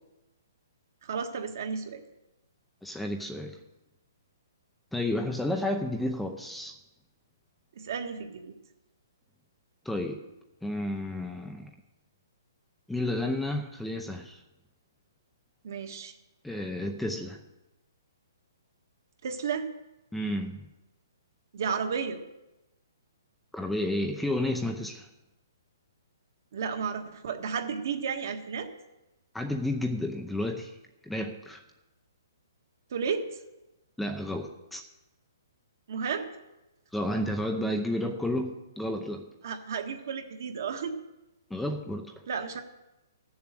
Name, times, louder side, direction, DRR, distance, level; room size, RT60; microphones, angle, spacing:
voice 1, 1.0-2.0 7.8-8.5 15.6-16.1 19.2-19.7 21.5-22.2 26.5-28.7 32.9-33.3 35.9-36.3 39.4-40.9 42.3-42.6, right 6 dB, 55° right, 5 dB, 1.5 m, -33 dB
voice 2, 2.8-3.6 4.9-6.7 9.8-10.2 10.6-11.7 12.9-14.4 16.4-17.4 20.1-20.7 23.5-25.1 29.3-30.8 31.0-31.6 34.0-34.8 36.9-39.3 41.5-42.2, left 1 dB, ahead, 3 dB, 0.7 m, -31 dB
13.5 x 7.2 x 7.6 m, 0.98 s
hypercardioid pair, 165°, 2 cm